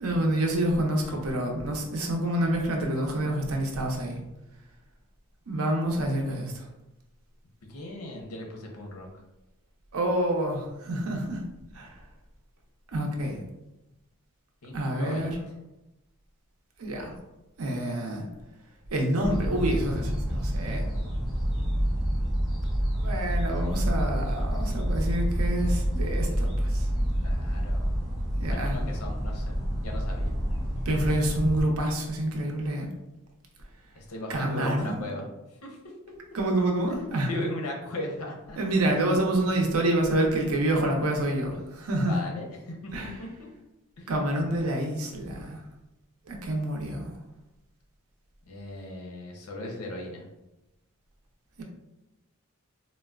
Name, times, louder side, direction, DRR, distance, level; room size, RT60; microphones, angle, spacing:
voice 1, 0.0-4.2 5.5-6.7 9.9-11.4 11.7-12.0 12.9-13.4 14.7-15.4 16.8-17.1 17.6-18.2 18.9-20.9 22.9-26.9 28.4-28.8 30.8-32.9 34.3-35.1 36.3-37.3 38.6-42.2 42.9-43.1 44.1-45.6 46.3-47.1 51.6-51.7, right 1 dB, 80° right, 1 dB, 0.6 m, -27 dB
voice 2, 7.7-9.1 14.6-15.3 27.2-27.9 28.4-30.3 33.9-35.3 35.6-35.8 36.9-37.0 37.2-38.6 42.0-42.9 43.2-43.3 44.0-44.1 48.5-50.2, left 1 dB, 90° left, 1 dB, 0.7 m, -37 dB
sound 1, 19.2-31.6, equal, ahead, 0.6 m, -28 dB
3.8 x 2.1 x 2.3 m, 0.95 s
head